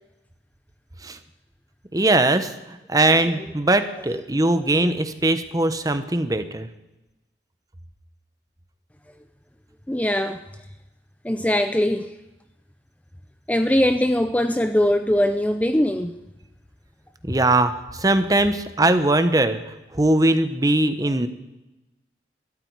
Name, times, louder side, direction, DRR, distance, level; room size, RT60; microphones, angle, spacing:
voice 1, 1.9-6.7 17.2-19.6 19.9-21.3, right 2 dB, 20° right, 10 dB, 0.9 m, -20 dB
voice 2, 9.9-10.4 11.2-12.1 13.5-16.1, left 1 dB, 10° left, 8 dB, 0.5 m, -21 dB
20.0 x 13.5 x 4.8 m, 1.0 s
head